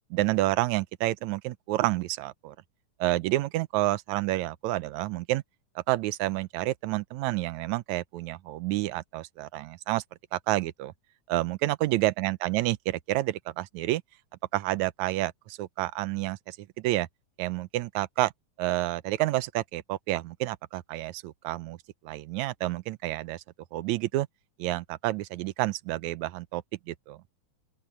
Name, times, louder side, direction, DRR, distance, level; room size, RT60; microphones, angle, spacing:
voice 1, 0.1-2.6 3.0-5.4 5.8-10.0 10.3-10.9 11.3-14.0 14.5-17.1 17.4-18.3 18.6-21.8 22.0-23.4 23.7-24.3 24.6-27.2, right 17 dB, 75° right, 1.9 m, -29 dB
open air
omnidirectional pair, 3.6 m